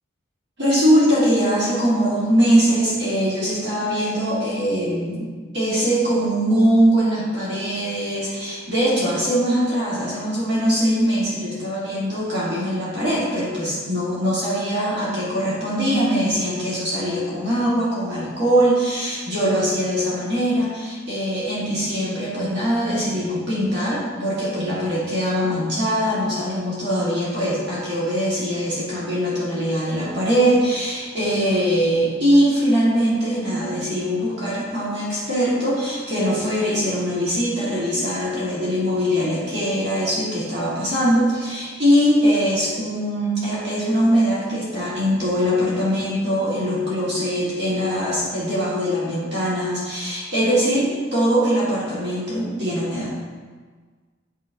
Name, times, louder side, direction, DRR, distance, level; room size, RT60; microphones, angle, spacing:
voice 1, 0.6-5.3 5.5-53.2, equal, 55° right, -8 dB, 1.7 m, -21 dB
8.5 x 6.0 x 2.6 m, 1.5 s
head